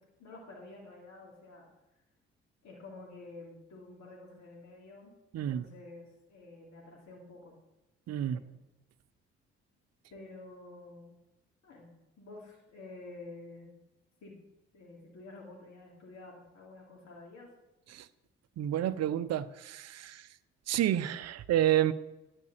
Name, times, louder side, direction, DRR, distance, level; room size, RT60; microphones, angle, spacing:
voice 1, 0.2-1.7 2.6-7.5 8.2-8.6 10.1-11.1 11.6-13.7 14.2-14.4 14.7-17.5, left 2 dB, 55° left, 3.1 m, -50 dB
voice 2, 5.3-5.7 8.1-8.4 17.9-18.1 18.6-20.3 20.7-21.9, right 12 dB, 55° right, 0.7 m, -29 dB
10.5 x 5.3 x 7.1 m
hypercardioid pair, 45°, 32 cm